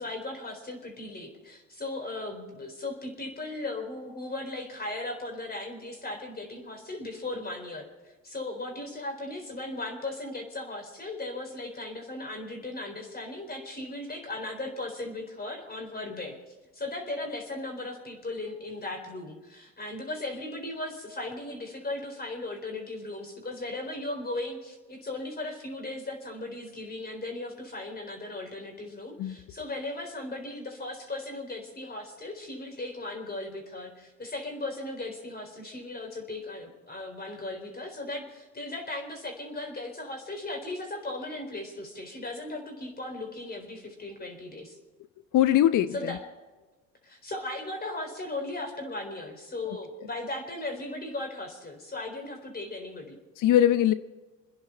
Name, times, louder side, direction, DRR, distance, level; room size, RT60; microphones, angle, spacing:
voice 1, 0.0-16.4 16.7-44.8 45.9-46.2 47.0-53.2, left 2 dB, 25° left, 3 dB, 4.2 m, -37 dB
voice 2, 45.3-46.2 49.7-49.8 53.4-53.9, left 12 dB, 50° left, 14 dB, 0.7 m, -22 dB
26.5 x 10.5 x 4.5 m, 1.2 s
hypercardioid pair, 75°, 40 cm